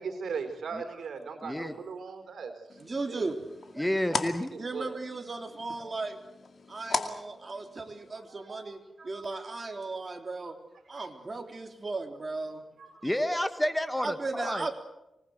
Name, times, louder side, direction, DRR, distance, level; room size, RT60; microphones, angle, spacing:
voice 1, 0.0-2.5 3.1-3.2 4.1-4.2 4.7-4.9 8.3-8.6 10.9-11.1 12.8-13.1, right 5 dB, 85° right, 6 dB, 4.0 m, -38 dB
voice 2, 1.4-1.7 3.8-4.5 13.0-14.7, left 1 dB, 10° left, 10 dB, 1.5 m, -30 dB
sound 1, 2.7-8.1, left 4 dB, 55° left, 2.2 m, -38 dB
voice 3, 2.8-3.4 3.7-3.9 4.6-6.2 6.7-10.6 10.9-12.6 14.0-14.7, right 3 dB, 35° right, 4 dB, 3.5 m, -36 dB
25.5 x 20.0 x 8.0 m, 0.91 s
wide cardioid pair, 95°, 0 cm